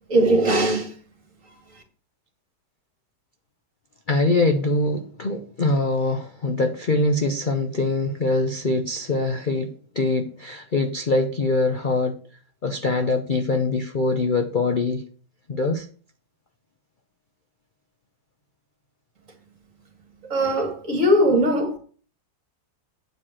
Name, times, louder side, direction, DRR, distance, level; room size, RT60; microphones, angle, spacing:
voice 1, 0.1-0.9 20.3-21.8, right 1 dB, 45° right, 2.5 m, -20 dB
voice 2, 4.1-12.2 12.6-15.0 15.5-15.8, left 2 dB, 50° left, 0.5 m, -23 dB
9.3 x 4.8 x 7.5 m
omnidirectional pair, 2.0 m